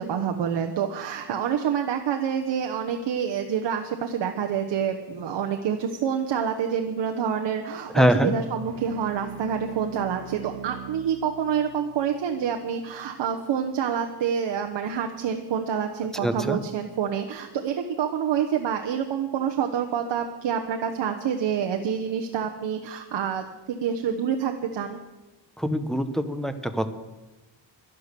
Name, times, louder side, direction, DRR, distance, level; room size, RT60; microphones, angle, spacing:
voice 1, 0.0-25.0, right 8 dB, 65° right, 4 dB, 1.1 m, -27 dB
voice 2, 7.9-8.3 16.2-16.6 25.6-26.9, equal, ahead, 8 dB, 0.8 m, -23 dB
sound 1, 8.6-13.5, right 10 dB, 85° right, 3.2 m, -43 dB
11.5 x 11.5 x 6.8 m, 1.1 s
wide cardioid pair, 145°, 45 cm